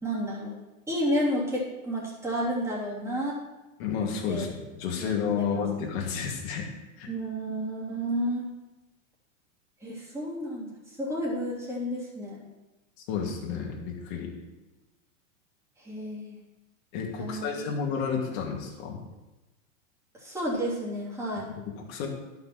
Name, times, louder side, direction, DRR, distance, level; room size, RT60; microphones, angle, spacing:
voice 1, 0.0-0.5 0.9-3.4 4.3-4.5 5.0-5.1 5.4-5.6 7.1-8.5 9.8-12.4 15.8-16.4 17.2-17.7 20.2-21.5, equal, 5° right, -6 dB, 3.1 m, -31 dB
voice 2, 3.8-6.7 7.0-7.1 13.1-14.3 16.9-19.0 21.4-22.1, left 6 dB, 50° left, -1 dB, 2.7 m, -31 dB
11.0 x 6.0 x 6.0 m, 1.1 s
supercardioid pair, 140°, 40 cm